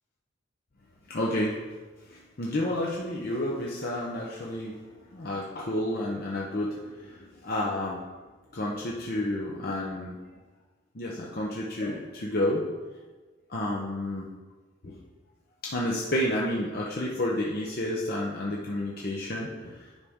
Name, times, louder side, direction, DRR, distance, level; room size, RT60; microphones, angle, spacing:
voice 1, 1.1-1.5 2.1-4.8 5.1-8.0 8.5-10.1 10.9-12.6 13.5-14.2 14.8-15.0 15.6-19.8, left 1 dB, 50° left, -3 dB, 0.8 m, -30 dB
9.8 x 5.7 x 3.7 m, 1.3 s
head